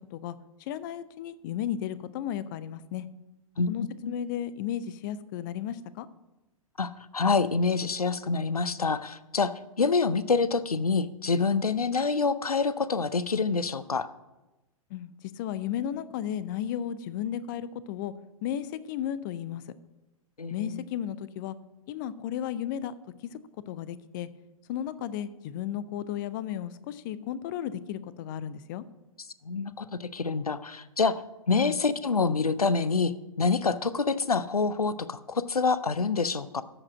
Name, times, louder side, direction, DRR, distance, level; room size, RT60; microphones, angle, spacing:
voice 1, 0.7-3.1 3.7-6.1 14.9-15.1 15.4-18.1 18.4-19.6 20.5-21.5 21.9-22.9 23.2-23.3 23.7-24.3 24.7-28.8 31.6-31.8, left 10 dB, 35° left, 16 dB, 0.5 m, -34 dB
voice 2, 3.6-4.1 6.8-14.1 20.4-20.8 29.4-31.2 31.5-36.6, left 4 dB, 85° left, 15 dB, 0.6 m, -27 dB
13.5 x 5.0 x 6.1 m, 1.0 s
figure-of-eight pair, 110°, 19 cm